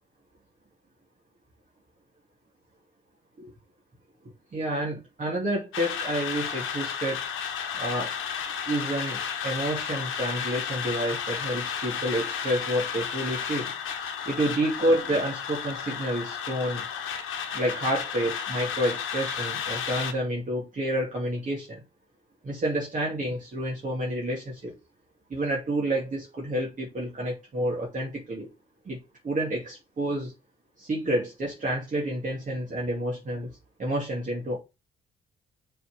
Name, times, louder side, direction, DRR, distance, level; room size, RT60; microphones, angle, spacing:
voice 1, 4.5-7.2 7.7-8.1 8.7-13.7 14.3-16.9 17.5-21.8 22.4-24.7 25.3-28.5 28.9-29.0 29.2-30.3 30.8-33.5 33.8-34.6, right 1 dB, 40° right, 2.5 m, -29 dB
sound 1, 5.7-20.1, left 7 dB, 85° left, 1.3 m, -33 dB
6.8 x 4.1 x 5.0 m
cardioid pair, 90°, 20 cm